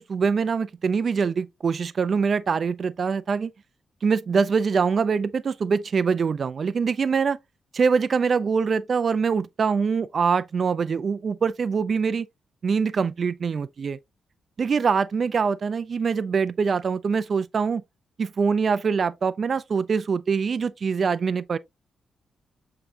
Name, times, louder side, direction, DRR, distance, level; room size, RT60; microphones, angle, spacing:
voice 1, 0.0-3.5 4.0-7.4 7.7-12.3 12.6-14.0 14.6-17.8 18.2-21.6, right 5 dB, 45° right, 0.5 m, -24 dB
8.0 x 4.8 x 2.7 m
wide cardioid pair, 135°, 0 cm